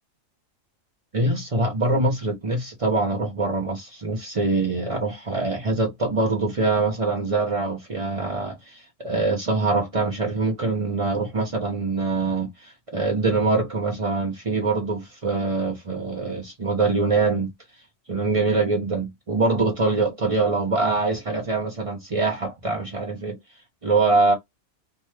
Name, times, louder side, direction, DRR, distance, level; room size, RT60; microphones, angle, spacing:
voice 1, 1.1-17.5 18.1-23.4 23.8-24.3, right 3 dB, 40° right, 0.4 m, -24 dB
2.6 x 2.3 x 3.1 m
omnidirectional pair, 1.5 m